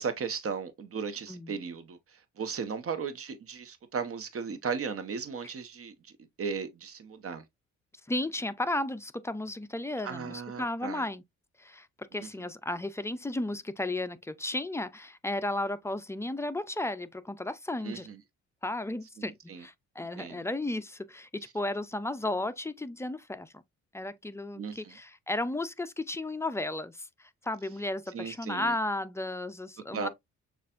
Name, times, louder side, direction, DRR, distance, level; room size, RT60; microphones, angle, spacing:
voice 1, 0.0-2.0 2.4-5.9 6.4-7.4 10.0-11.1 12.1-12.3 17.8-18.2 19.2-19.6 20.2-20.4 24.6-24.9 28.1-28.7 29.9-30.1, right 6 dB, 50° right, 1.0 m, -36 dB
voice 2, 8.1-11.2 11.6-11.9 12.1-18.1 18.6-23.6 23.9-30.1, left 2 dB, 10° left, 0.4 m, -34 dB
6.6 x 2.5 x 2.5 m
cardioid pair, 90°, 30 cm